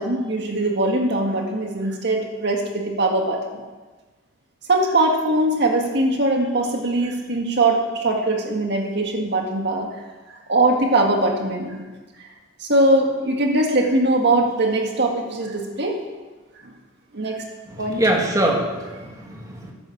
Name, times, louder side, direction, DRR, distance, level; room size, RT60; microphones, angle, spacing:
voice 1, 0.0-3.6 4.7-9.9 10.5-11.8 12.6-16.0 17.1-17.4 17.8-18.0, right 2 dB, 60° right, 2 dB, 1.9 m, -21 dB
voice 2, 17.7-19.7, right 1 dB, 15° right, -1 dB, 2.5 m, -23 dB
14.5 x 11.5 x 7.2 m, 1.3 s
head